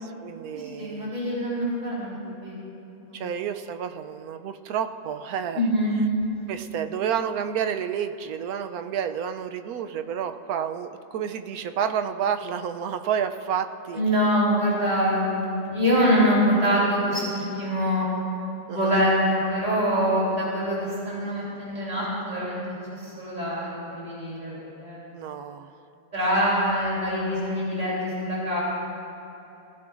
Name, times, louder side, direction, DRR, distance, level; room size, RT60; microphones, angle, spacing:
voice 1, 0.0-1.1 3.1-5.6 6.5-14.0 18.7-19.0 25.1-25.7, right 8 dB, 75° right, 8 dB, 1.1 m, -30 dB
voice 2, 0.5-2.6 3.1-3.2 5.5-5.9 13.9-18.1 18.6-22.6 22.9-25.1 26.1-28.6, equal, 25° right, -7 dB, 3.7 m, -25 dB
20.5 x 15.0 x 2.6 m, 2.9 s
omnidirectional pair, 1.6 m